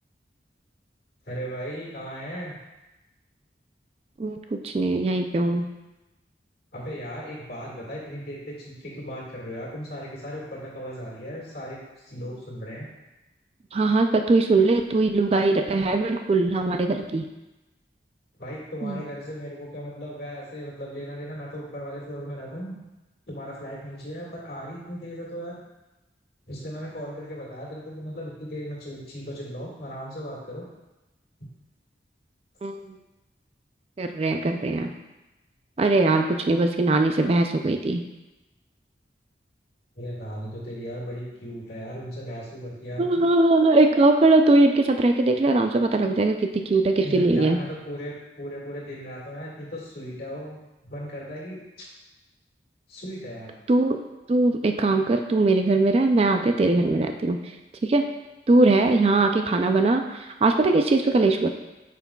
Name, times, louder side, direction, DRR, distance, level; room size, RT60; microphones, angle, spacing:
voice 1, 1.3-2.6 6.7-12.9 18.4-22.8 23.3-25.6 26.5-30.6 40.0-43.2 47.0-51.9 52.9-53.5, equal, 55° left, -3 dB, 1.9 m, -36 dB
voice 2, 4.2-5.7 13.7-17.2 18.8-19.0 32.6-33.0 34.0-34.9 35.8-38.0 43.0-47.6 53.7-54.0 54.3-57.4 57.8-58.0 58.5-61.5, right 2 dB, 35° right, 5 dB, 0.3 m, -21 dB
8.3 x 5.9 x 2.3 m, 1.0 s
head